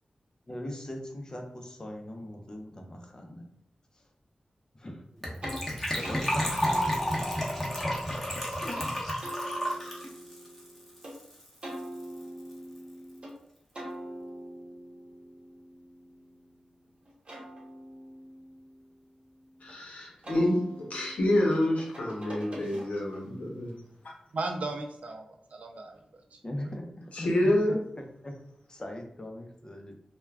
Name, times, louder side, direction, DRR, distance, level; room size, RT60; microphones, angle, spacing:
voice 1, 0.5-3.5 3.9-4.0 4.7-5.0 5.9-6.6 8.6-8.8 26.4-27.5 28.0-28.3 28.7-29.9, left 1 dB, 30° left, 2 dB, 0.5 m, -40 dB
Gurgling / Trickle dribble / Fill (with liquid), 5.2-11.5 11.7-11.8 12.0-12.2 12.5-12.6, equal, 10° left, 0.9 m, -31 dB
sound 1, 5.4-5.6 6.0-6.2 6.6-8.9 9.2-11.1 11.6-13.3 13.7-16.6 17.0-19.7 20.2-23.2, right 1 dB, 50° right, 0.9 m, -44 dB
voice 2, 19.6-20.6 20.9-23.7 27.1-27.8, left 1 dB, 80° left, -1 dB, 0.7 m, -27 dB
voice 3, 24.3-26.0 26.3-26.7, right 3 dB, 75° right, 3 dB, 0.4 m, -36 dB
2.3 x 2.2 x 3.3 m, 0.70 s
wide cardioid pair, 75°, 2 cm